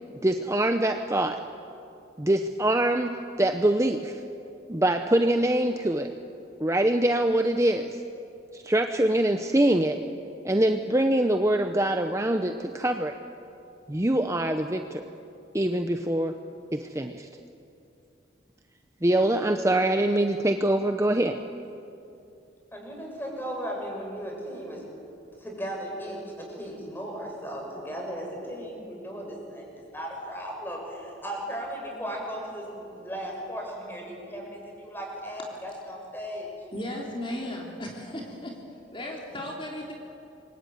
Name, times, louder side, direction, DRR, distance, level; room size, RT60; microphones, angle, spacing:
voice 1, 0.2-1.4 2.2-4.2 4.7-6.1 6.6-8.0 8.5-10.0 10.4-13.1 13.9-15.1 15.5-16.4 16.7-17.3 19.0-21.4, right 1 dB, 15° right, 6 dB, 0.8 m, -24 dB
voice 2, 22.7-24.8 25.4-36.5, equal, 10° left, -1 dB, 6.6 m, -36 dB
voice 3, 36.7-38.6 38.9-39.9, left 1 dB, 25° left, -1 dB, 3.4 m, -35 dB
27.5 x 23.0 x 9.4 m, 2.7 s
head